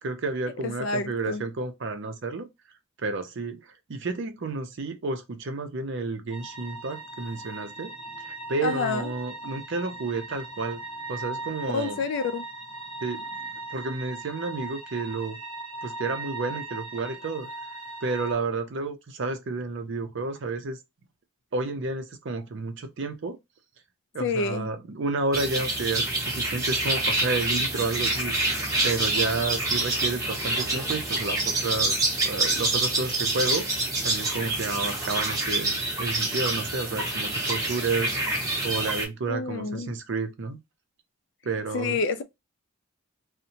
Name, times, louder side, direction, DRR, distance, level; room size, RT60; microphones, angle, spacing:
voice 1, 0.0-2.5 3.0-3.6 3.9-7.9 8.2-10.8 11.1-12.0 13.0-15.4 15.8-17.5 18.0-20.8 21.5-23.4 24.1-32.0 32.2-38.2 38.6-40.6 41.4-42.0, right 3 dB, 55° right, 0.5 m, -31 dB
voice 2, 0.6-1.4 8.6-9.1 11.7-12.5 24.2-24.7 39.3-40.0 41.7-42.2, left 4 dB, 55° left, 0.3 m, -28 dB
sound 1, 6.3-18.3, right 2 dB, 25° left, 0.8 m, -39 dB
sound 2, 25.3-39.1, right 2 dB, 15° right, 0.7 m, -27 dB
2.7 x 2.1 x 2.8 m
head